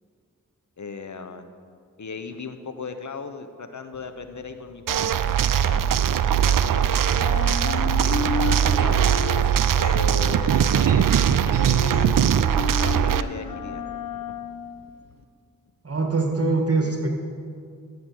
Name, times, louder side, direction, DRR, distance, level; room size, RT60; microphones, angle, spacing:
voice 1, 0.8-1.5 2.0-7.4 8.4-9.1 9.8-13.9, left 4 dB, 60° left, 9 dB, 1.0 m, -37 dB
sound 1, 3.9-6.8 7.1-15.2, left 5 dB, 80° left, 0.9 m, -34 dB
sound 2, 4.9-13.2, right 9 dB, 75° right, 0.5 m, -20 dB
voice 2, 15.8-17.1, right 3 dB, 45° right, 2 dB, 1.9 m, -23 dB
13.0 x 7.2 x 6.3 m, 2.2 s
cardioid pair, 45°, 34 cm